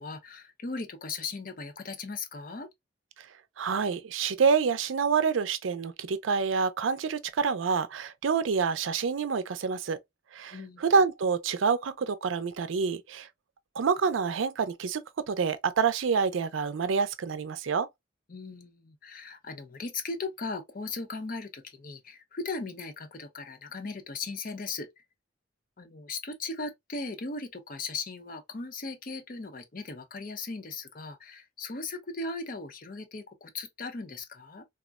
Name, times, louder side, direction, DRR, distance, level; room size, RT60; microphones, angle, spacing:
voice 1, 0.0-2.7 10.5-10.8 18.3-24.9 25.8-34.7, left 3 dB, 45° left, 0.6 m, -38 dB
voice 2, 3.6-10.0 10.3-13.3 13.7-17.9, right 5 dB, 85° right, 0.5 m, -27 dB
3.5 x 2.1 x 2.3 m
head